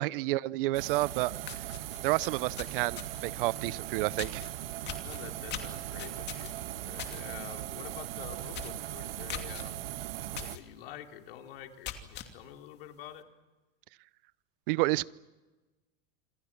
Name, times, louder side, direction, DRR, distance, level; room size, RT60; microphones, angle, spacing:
voice 1, 0.0-1.3 2.0-4.4 14.7-15.1, right 19 dB, 65° right, 21 dB, 0.8 m, -30 dB
sound 1, 0.7-10.6, right 14 dB, 80° right, 1.3 m, -39 dB
sound 2, 1.0-1.1 1.4-3.3 4.2-4.5 4.9-7.2 7.5-7.8 8.1-8.2 8.5-8.8 9.3-9.6 10.4-10.6 11.1-11.2 11.6-12.3, left 11 dB, 35° left, 2.7 m, -41 dB
voice 2, 5.0-9.8 10.4-13.2, left 10 dB, 75° left, 5 dB, 3.2 m, -47 dB
27.5 x 27.0 x 6.0 m, 1.2 s
supercardioid pair, 135°, 29 cm